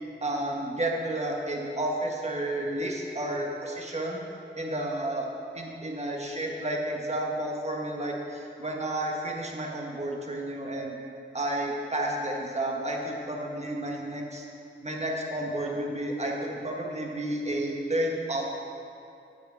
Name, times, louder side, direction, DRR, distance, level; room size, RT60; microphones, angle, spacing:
voice 1, 0.2-4.2 4.6-5.3 5.5-11.0 11.3-14.5 14.8-18.5, right 1 dB, 35° right, -1 dB, 1.6 m, -31 dB
9.8 x 6.0 x 7.7 m, 2.6 s
wide cardioid pair, 80°, 20 cm